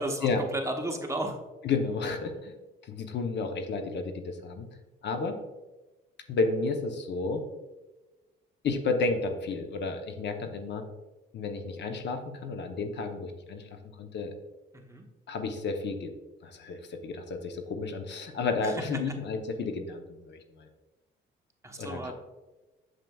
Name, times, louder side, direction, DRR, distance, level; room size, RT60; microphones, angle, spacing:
voice 1, 0.0-1.4 14.7-15.0 18.6-19.1 21.6-22.1, right 1 dB, 15° right, 3 dB, 0.9 m, -34 dB
voice 2, 1.6-2.5 2.8-4.7 5.0-5.4 6.3-7.4 8.6-10.9 11.3-13.7 14.0-14.3 15.3-16.1 16.4-20.7 21.8-22.1, left 4 dB, 60° left, 6 dB, 0.8 m, -31 dB
7.5 x 6.7 x 2.3 m, 1.1 s
cardioid pair, 90°, 20 cm